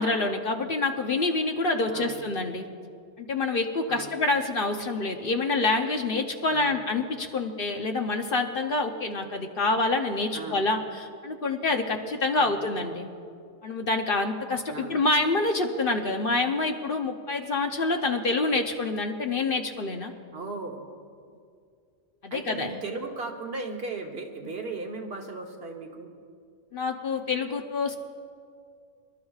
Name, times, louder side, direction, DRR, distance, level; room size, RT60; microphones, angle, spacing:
voice 1, 0.0-2.6 3.2-13.1 13.6-20.1 22.2-22.8 26.7-28.0, left 3 dB, 50° left, 4 dB, 0.9 m, -27 dB
voice 2, 1.9-2.2 3.9-4.1 6.5-6.8 10.3-10.6 12.3-12.5 14.7-15.0 20.3-20.8 22.3-26.1, right 3 dB, 55° right, 3 dB, 1.3 m, -36 dB
26.0 x 12.5 x 2.4 m, 2.2 s
omnidirectional pair, 1.3 m